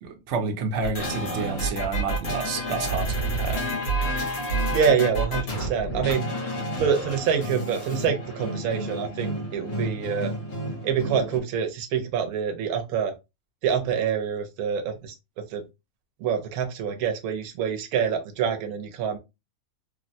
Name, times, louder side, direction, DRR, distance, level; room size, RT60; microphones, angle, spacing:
voice 1, 0.0-3.7, right 4 dB, 60° right, 0.9 m, -30 dB
sound 1, 0.8-11.4, right 1 dB, 85° left, 1.5 m, -29 dB
voice 2, 4.7-6.3 6.8-10.3 10.8-13.1 13.6-15.6 16.2-19.2, right 7 dB, 90° right, 1.1 m, -26 dB
3.2 x 2.0 x 2.6 m
omnidirectional pair, 1.5 m